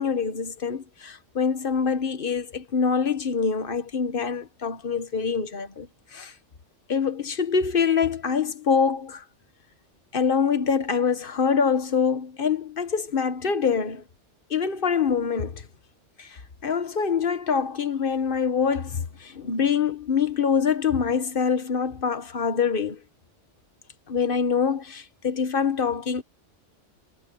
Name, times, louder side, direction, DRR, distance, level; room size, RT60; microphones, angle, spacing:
voice 1, 0.0-5.9 6.1-6.3 6.9-9.2 10.1-14.0 14.5-15.7 16.2-23.0 24.1-26.2, left 6 dB, 45° left, 1.4 m, -25 dB
omnidirectional pair, 1.3 m